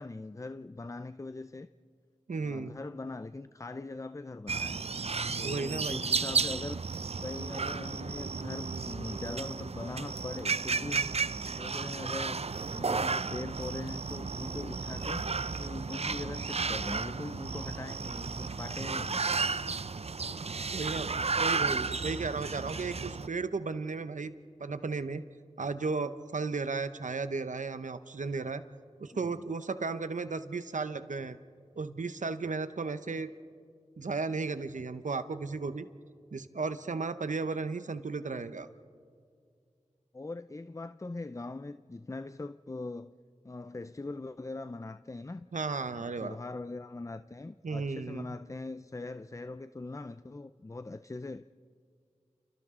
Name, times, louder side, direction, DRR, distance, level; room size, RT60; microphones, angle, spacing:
voice 1, 0.0-1.7 2.4-4.8 5.4-6.9 7.2-11.1 11.6-15.3 15.6-19.2 21.7-21.9 29.1-29.5 40.1-43.1 43.4-45.5 46.0-51.4, left 2 dB, 25° left, 0.5 m, -41 dB
voice 2, 2.3-2.8 5.4-6.0 20.4-24.3 24.6-25.3 25.6-28.6 29.0-31.4 31.8-33.3 34.0-35.9 36.3-38.7 45.5-46.4 47.6-48.3, right 4 dB, 90° right, 0.8 m, -34 dB
sound 1, 4.5-23.3, right 4 dB, 55° right, 0.5 m, -33 dB
30.0 x 29.5 x 3.8 m
wide cardioid pair, 50°, 12 cm